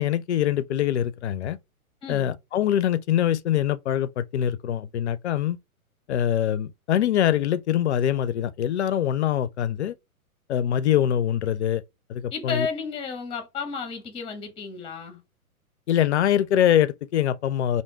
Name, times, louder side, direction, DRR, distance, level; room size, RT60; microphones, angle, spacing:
voice 1, 0.0-1.6 2.1-5.6 6.1-9.9 10.5-11.8 12.1-12.7 15.9-17.8, left 10 dB, 50° left, 0.4 m, -23 dB
voice 2, 12.3-15.2, left 5 dB, 10° left, 0.8 m, -32 dB
3.4 x 2.7 x 2.7 m
figure-of-eight pair, 120°, 44 cm